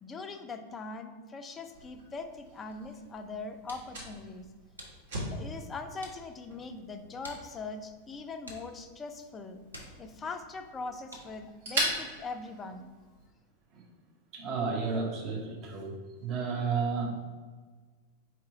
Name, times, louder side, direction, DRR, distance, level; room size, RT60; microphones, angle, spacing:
voice 1, 0.0-4.5 5.2-9.6 10.0-12.9, left 3 dB, 20° left, 7 dB, 0.4 m, -41 dB
Fire, 1.7-13.3, right 1 dB, 60° right, 1.3 m, -41 dB
sound 1, 3.3-11.5, equal, 85° right, 0.7 m, -53 dB
voice 2, 14.3-15.9 16.2-17.1, right 5 dB, 35° right, 0 dB, 0.9 m, -32 dB
4.3 x 3.0 x 3.6 m, 1.4 s
figure-of-eight pair, 90°, 0 cm